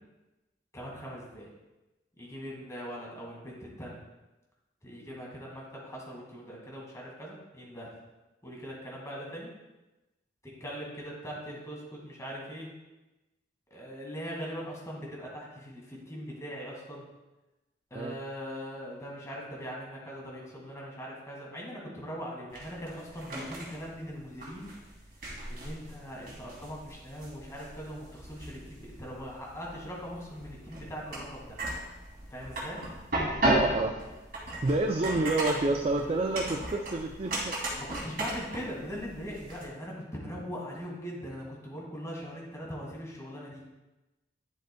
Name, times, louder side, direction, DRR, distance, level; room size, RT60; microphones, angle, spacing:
voice 1, 0.7-1.5 2.2-4.0 4.8-7.9 8.4-9.5 10.6-12.7 13.7-17.1 17.9-24.7 25.5-31.6 32.3-32.8 37.8-43.6, equal, 15° left, -3 dB, 2.0 m, -41 dB
sound 1, 22.5-39.7, right 1 dB, 55° right, 2.5 m, -36 dB
voice 2, 33.4-33.9 34.6-37.6 37.9-38.1, right 2 dB, 35° right, 4 dB, 0.4 m, -29 dB
10.5 x 7.7 x 2.3 m, 1.0 s
head